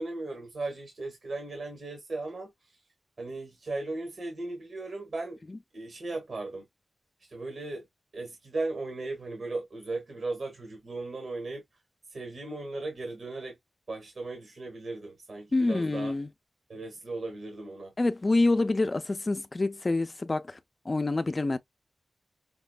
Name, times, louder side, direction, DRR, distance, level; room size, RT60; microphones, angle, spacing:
voice 1, 0.0-2.5 3.2-5.4 5.7-6.6 7.3-7.8 8.1-11.6 12.1-13.6 13.9-16.1 16.7-17.9, right 2 dB, 65° right, 1.6 m, -36 dB
voice 2, 15.5-16.3 18.0-20.6 20.9-21.6, left 2 dB, 35° left, 0.5 m, -27 dB
5.9 x 2.1 x 2.3 m
wide cardioid pair, 70°, 0 cm